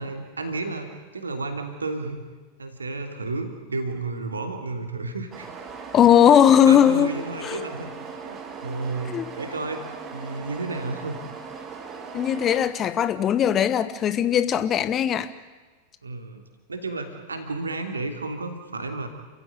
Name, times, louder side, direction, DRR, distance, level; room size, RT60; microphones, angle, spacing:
voice 1, 0.0-2.2 2.6-5.5 6.6-7.9 8.2-9.8 10.1-11.2 16.0-16.4 16.7-19.1, right 3 dB, 75° right, 5 dB, 3.0 m, -32 dB
sound 1, 5.3-12.7, right 5 dB, 25° right, 2.9 m, -39 dB
voice 2, 5.9-7.1 7.4-7.6 9.0-9.3 12.1-15.3, left 9 dB, 30° left, 13 dB, 1.2 m, -19 dB
29.0 x 15.5 x 9.6 m, 1.3 s
figure-of-eight pair, 90°, 0 cm